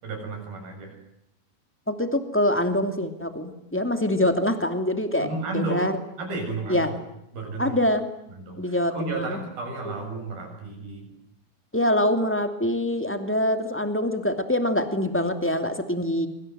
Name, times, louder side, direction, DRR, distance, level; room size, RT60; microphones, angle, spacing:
voice 1, 0.0-1.0 5.2-5.8 6.2-6.9 7.3-7.8 8.3-11.1, right 3 dB, 75° right, 3 dB, 9.4 m, -32 dB
voice 2, 1.9-5.3 5.5-5.9 6.7-6.9 7.6-8.0 8.6-9.4 11.7-16.3, left 1 dB, 5° left, 7 dB, 1.7 m, -24 dB
25.5 x 25.0 x 8.0 m, 0.81 s
omnidirectional pair, 4.3 m